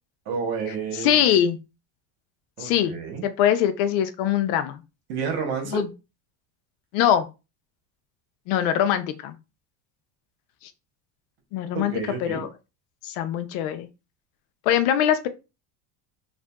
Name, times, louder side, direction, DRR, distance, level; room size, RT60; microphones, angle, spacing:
voice 1, 0.3-1.2 2.6-3.3 5.1-5.9 11.7-12.5, right 6 dB, 55° right, 1.1 m, -30 dB
voice 2, 1.0-1.6 2.6-3.0 3.2-4.8 5.7-5.9 6.9-7.3 8.5-9.4 11.5-11.9 12.2-12.5 13.0-13.9 14.7-15.3, left 10 dB, 75° left, 0.6 m, -22 dB
2.5 x 2.5 x 2.3 m
supercardioid pair, 115°, 44 cm